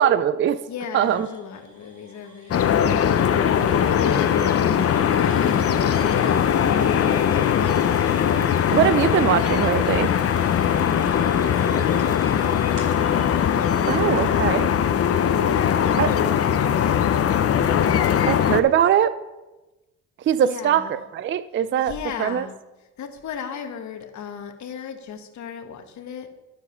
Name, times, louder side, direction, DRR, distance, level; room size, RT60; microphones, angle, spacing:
voice 1, 0.0-0.6 0.9-1.3 6.6-6.7 8.7-10.1 13.9-14.7 16.0-16.1 18.3-19.2 20.2-21.9 22.2-22.5, right 9 dB, 40° right, 14 dB, 0.4 m, -21 dB
voice 2, 0.7-3.2 3.9-6.7 10.9-12.7 13.6-14.3 15.2-16.1 16.8-17.3 20.4-21.0 21.8-22.5 23.0-26.3, left 7 dB, 70° left, 6 dB, 1.2 m, -37 dB
sound 1, 1.0-16.7, right 2 dB, 65° right, 3.2 m, -45 dB
sound 2, 2.5-18.6, left 8 dB, 50° left, 0.7 m, -20 dB
12.5 x 4.8 x 5.5 m, 1.1 s
cardioid pair, 90°, 30 cm